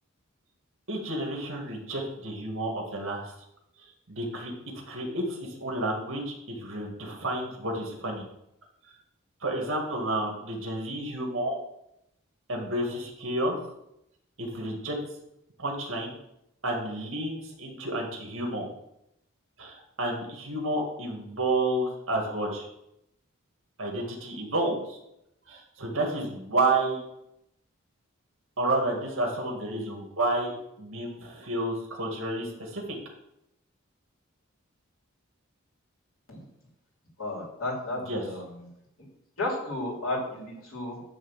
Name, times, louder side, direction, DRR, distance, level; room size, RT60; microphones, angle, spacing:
voice 1, 0.9-3.3 4.1-4.5 4.9-8.3 9.4-11.6 12.5-13.6 14.4-15.0 15.6-16.1 16.6-18.7 19.6-22.7 23.8-25.0 25.5-27.0 28.6-30.5 30.8-33.0 38.1-38.2, right 2 dB, 70° right, 0 dB, 2.0 m, -30 dB
voice 2, 37.2-38.7 39.0-39.1 39.4-41.0, left 2 dB, 75° left, -3 dB, 3.2 m, -33 dB
10.5 x 3.6 x 7.3 m, 0.82 s
head